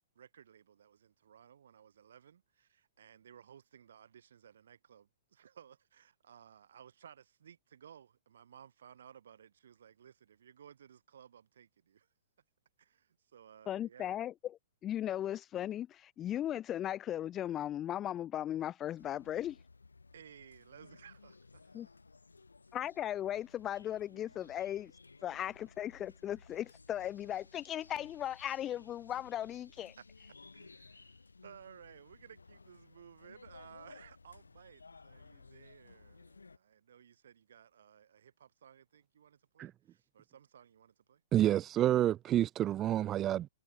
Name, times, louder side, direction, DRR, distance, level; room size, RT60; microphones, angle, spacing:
voice 1, 0.1-12.1 12.8-14.2 20.1-21.8 30.0-30.1 30.5-41.2, right 8 dB, 60° right, 5.9 m, -58 dB
voice 2, 13.7-14.3 14.8-19.6 21.7-21.9 22.7-24.9 25.2-29.9, left 11 dB, 25° left, 0.6 m, -37 dB
sound 1, 19.0-36.6, left 4 dB, 75° left, 5.1 m, -58 dB
voice 3, 41.3-43.5, right 12 dB, 25° right, 0.4 m, -29 dB
figure-of-eight pair, 110°, 0 cm